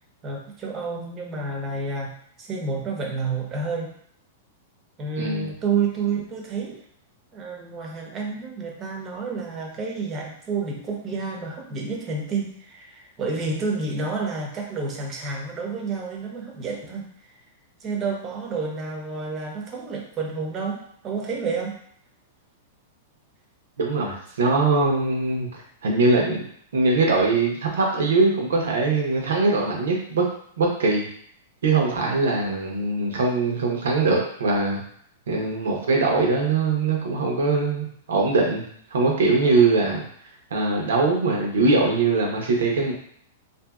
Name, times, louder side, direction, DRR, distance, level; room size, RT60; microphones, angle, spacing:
voice 1, 0.2-4.0 5.0-6.8 7.3-17.4 17.8-21.8, right 4 dB, 25° right, 0 dB, 0.6 m, -30 dB
voice 2, 5.2-5.5 23.8-25.5 25.8-26.5 26.7-30.2 30.6-31.0 31.6-34.8 35.3-38.6 38.9-40.0 40.5-42.9, right 3 dB, 90° right, 0 dB, 0.8 m, -21 dB
2.7 x 2.6 x 2.3 m, 0.63 s
hypercardioid pair, 145°, 0 cm